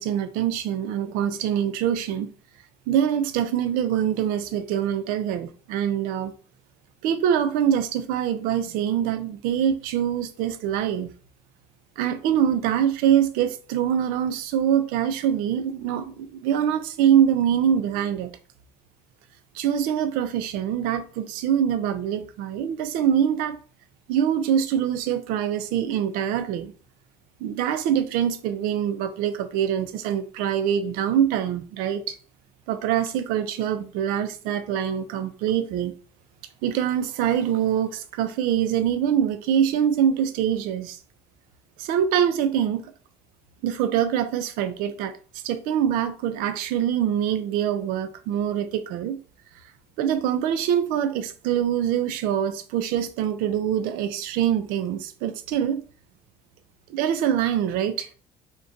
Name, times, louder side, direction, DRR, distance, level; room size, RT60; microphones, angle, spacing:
voice 1, 0.0-2.3 2.9-6.3 7.0-11.1 12.0-18.3 19.5-23.6 24.1-26.7 27.4-32.2 32.7-35.9 36.6-41.0 41.8-42.9 43.6-45.1 45.4-49.2 50.0-55.8 56.9-58.1, right 9 dB, 80° right, 0.4 m, -24 dB
2.5 x 2.2 x 3.8 m
cardioid pair, 100°, 15 cm